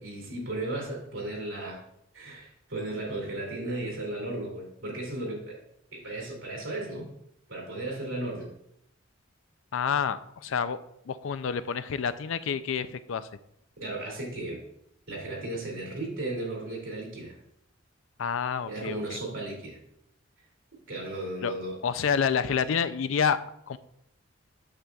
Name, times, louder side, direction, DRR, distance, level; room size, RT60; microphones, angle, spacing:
voice 1, 0.0-1.8 2.1-5.6 5.9-7.1 7.5-8.5 13.8-14.6 15.1-17.4 18.7-19.8 20.9-21.8, right 2 dB, 80° right, -2 dB, 2.5 m, -35 dB
voice 2, 9.7-10.8 11.1-13.3 18.2-19.2 21.4-21.5 21.8-23.4 23.7-23.8, left 6 dB, 75° left, 13 dB, 0.4 m, -28 dB
8.8 x 6.7 x 2.3 m, 0.76 s
head